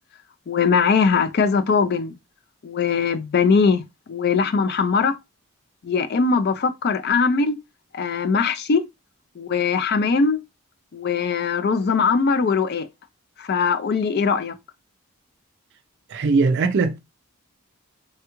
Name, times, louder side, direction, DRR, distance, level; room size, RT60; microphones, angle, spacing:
voice 1, 0.5-2.2 2.6-5.2 5.8-7.6 7.9-8.8 9.4-10.4 10.9-12.9 13.4-14.5, left 5 dB, 45° left, 0.4 m, -21 dB
voice 2, 16.1-17.0, right 4 dB, 50° right, 0.4 m, -20 dB
3.3 x 2.3 x 2.9 m
head